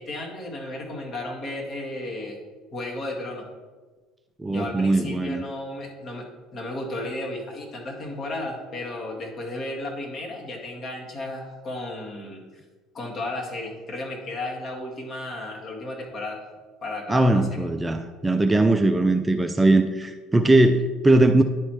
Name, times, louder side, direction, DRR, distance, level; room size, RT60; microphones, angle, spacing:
voice 1, 0.0-2.4 2.7-3.5 4.5-12.4 12.9-16.4 16.8-17.6, left 2 dB, 40° left, -1 dB, 1.9 m, -34 dB
voice 2, 4.4-5.4 17.1-21.4, right 2 dB, 15° right, 6 dB, 0.4 m, -20 dB
10.5 x 4.3 x 3.1 m, 1.4 s
hypercardioid pair, 70°, 0 cm